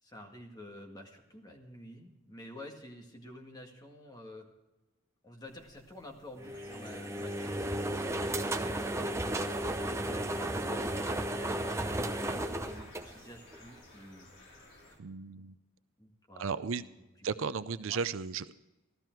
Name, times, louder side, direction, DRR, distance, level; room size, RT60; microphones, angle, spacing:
voice 1, 0.0-4.5 5.2-7.7 8.1-14.3 15.3-15.4 16.0-17.5 17.9-18.0, left 1 dB, 20° left, 1 dB, 1.8 m, -50 dB
sound 1, 6.4-15.0, left 2 dB, 60° left, 3.1 m, -56 dB
sound 2, 6.4-13.7, right 1 dB, 15° right, 0.7 m, -34 dB
voice 2, 15.0-15.5 16.4-16.8 17.2-18.6, right 5 dB, 70° right, 14 dB, 0.5 m, -35 dB
14.0 x 13.0 x 4.5 m, 1.0 s
head